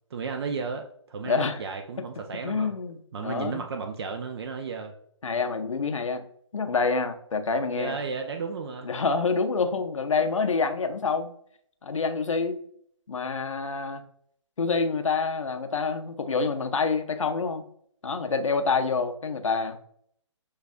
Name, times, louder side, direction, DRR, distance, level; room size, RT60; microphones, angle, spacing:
voice 1, 0.1-2.7 3.1-4.9 7.7-8.9, right 5 dB, 55° right, 5 dB, 0.4 m, -33 dB
voice 2, 1.2-1.6 2.4-3.6 5.2-6.2 6.5-8.0 8.8-11.3 11.8-12.6 13.1-14.0 14.6-17.6 18.0-19.8, left 4 dB, 80° left, 7 dB, 0.6 m, -27 dB
6.3 x 2.3 x 2.5 m, 0.67 s
figure-of-eight pair, 140°, 16 cm